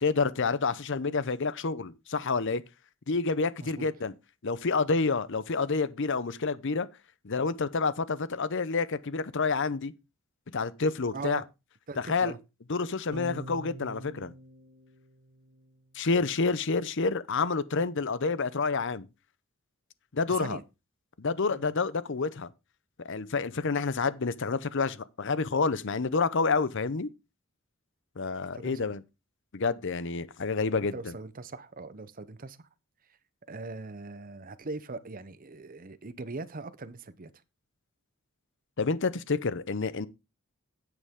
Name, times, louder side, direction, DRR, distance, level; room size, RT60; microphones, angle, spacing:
voice 1, 0.0-2.6 3.1-4.1 4.4-6.9 7.2-9.9 10.5-11.4 12.0-12.4 12.7-14.3 15.9-19.1 20.1-20.6 21.2-22.5 23.0-27.1 28.2-29.0 29.5-31.1 38.8-40.1, left 4 dB, 55° left, 0.7 m, -28 dB
voice 2, 11.1-11.4 11.9-12.4 20.3-20.6 21.5-21.6 28.5-28.9 30.9-32.7 33.5-37.3, right 3 dB, 40° right, 0.7 m, -40 dB
sound 1, 13.1-15.7, right 1 dB, 85° right, 1.7 m, -45 dB
9.9 x 8.0 x 3.7 m
head